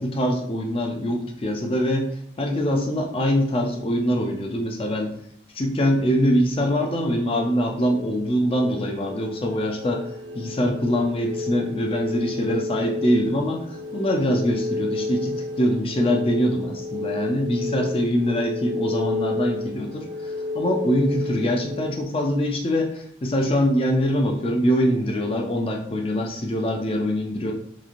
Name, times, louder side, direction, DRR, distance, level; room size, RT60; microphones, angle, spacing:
voice 1, 0.0-2.1 2.4-5.1 5.6-10.1 10.3-27.5, equal, 30° left, 2 dB, 0.4 m, -23 dB
sound 1, 7.4-22.0, left 2 dB, 75° right, 0.3 m, -32 dB
3.1 x 2.4 x 2.4 m, 0.67 s
head